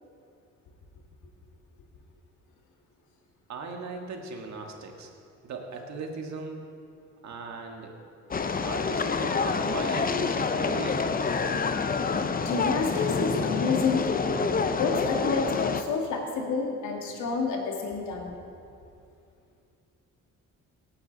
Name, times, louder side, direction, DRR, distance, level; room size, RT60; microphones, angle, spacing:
voice 1, 3.5-5.1 5.4-6.6 7.2-8.0 8.6-11.6, right 4 dB, 65° right, 2 dB, 1.8 m, -39 dB
sound 1, 8.3-15.8, left 4 dB, 30° left, 0.7 m, -27 dB
voice 2, 12.1-18.4, left 4 dB, 80° left, 1 dB, 2.2 m, -29 dB
18.0 x 9.7 x 4.1 m, 2.5 s
cardioid pair, 90°, 30 cm